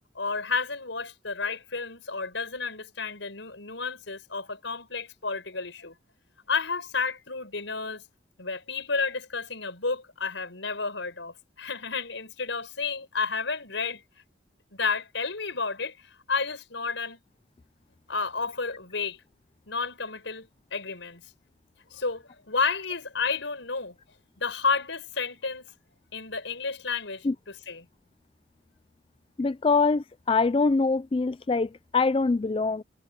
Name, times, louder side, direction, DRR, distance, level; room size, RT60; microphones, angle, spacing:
voice 1, 0.2-6.0 6.5-8.0 8.4-14.0 14.7-17.2 18.1-19.2 19.7-21.2 21.9-24.0 24.4-25.7 26.1-27.9, left 4 dB, 85° left, 5.6 m, -31 dB
voice 2, 29.4-32.8, left 4 dB, 30° left, 0.3 m, -24 dB
head